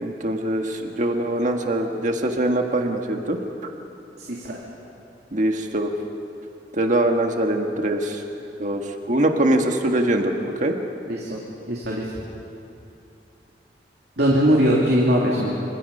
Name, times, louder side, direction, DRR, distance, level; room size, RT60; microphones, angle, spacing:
voice 1, 0.0-3.4 5.3-5.9 6.7-8.2 8.6-8.8 9.1-10.7, right 1 dB, 45° right, 3 dB, 1.5 m, -22 dB
voice 2, 11.1-11.4 11.7-12.0 14.2-15.5, equal, 65° right, -3 dB, 2.9 m, -20 dB
27.0 x 25.5 x 5.5 m, 2.7 s
head